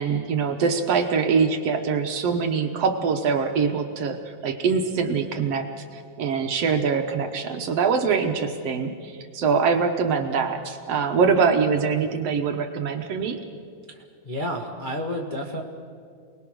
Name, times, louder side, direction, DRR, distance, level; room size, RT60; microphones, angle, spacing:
voice 1, 0.0-13.4, right 5 dB, 60° right, 5 dB, 1.9 m, -24 dB
voice 2, 13.9-15.6, equal, 35° left, 0 dB, 0.8 m, -31 dB
29.0 x 20.0 x 6.3 m, 2.2 s
omnidirectional pair, 3.6 m